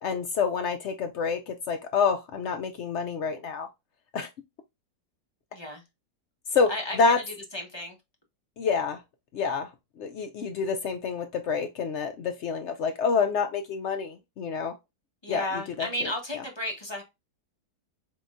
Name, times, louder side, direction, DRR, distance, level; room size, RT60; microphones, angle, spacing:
voice 1, 0.0-3.7 4.1-4.3 6.5-6.7 7.0-7.2 8.6-9.0 9.3-9.7 10.0-14.8 15.3-15.5 15.8-16.1, left 5 dB, 80° left, 0.6 m, -27 dB
voice 2, 5.5-5.8 6.7-8.0 15.2-17.0, left 1 dB, 20° left, 0.8 m, -33 dB
3.8 x 3.7 x 2.4 m
omnidirectional pair, 1.8 m